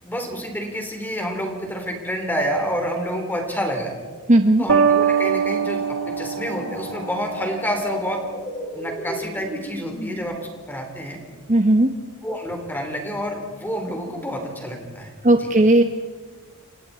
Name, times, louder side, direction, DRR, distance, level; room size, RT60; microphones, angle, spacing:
voice 1, 0.0-4.0 4.6-8.2 8.7-11.2 12.2-15.5, equal, 10° left, 2 dB, 4.1 m, -28 dB
voice 2, 4.3-4.7 11.5-11.9 15.2-15.8, right 1 dB, 35° right, 6 dB, 1.1 m, -15 dB
sound 1, 4.7-10.2, left 1 dB, 30° left, 7.1 m, -35 dB
sound 2, 4.7-7.5, right 6 dB, 60° right, 2.2 m, -22 dB
29.5 x 26.5 x 4.5 m, 1.4 s
head